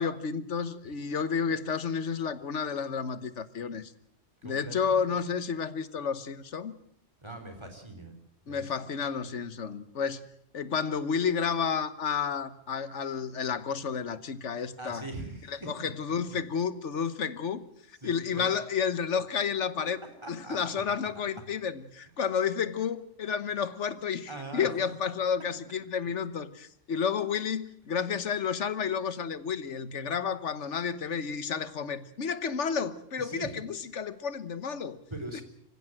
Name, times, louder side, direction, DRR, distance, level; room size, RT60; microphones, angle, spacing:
voice 1, 0.0-3.9 4.4-6.7 8.5-10.3 10.5-15.1 15.5-35.0 35.3-35.4, left 6 dB, 70° left, 1.4 m, -31 dB
voice 2, 4.4-5.2 7.2-8.1 8.5-8.7 14.8-15.6 16.3-16.4 18.0-18.5 20.2-20.6 20.9-21.0 24.3-24.7 33.2-33.5 35.1-35.4, right 2 dB, 20° right, 3.5 m, -41 dB
25.5 x 15.5 x 7.7 m
omnidirectional pair, 1.3 m